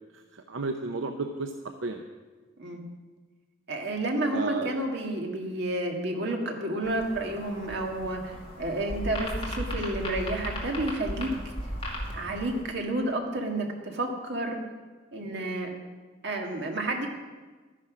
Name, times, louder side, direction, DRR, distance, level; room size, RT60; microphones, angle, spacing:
voice 1, 0.1-1.5 1.8-2.0 4.3-4.7, right 3 dB, 80° right, 5 dB, 0.7 m, -32 dB
voice 2, 3.7-11.5 12.1-14.6 15.1-15.7 16.2-17.1, right 1 dB, 60° right, 2 dB, 1.9 m, -30 dB
sound 1, 6.8-12.6, equal, 30° left, 2.5 m, -36 dB
12.0 x 9.9 x 6.2 m, 1.4 s
head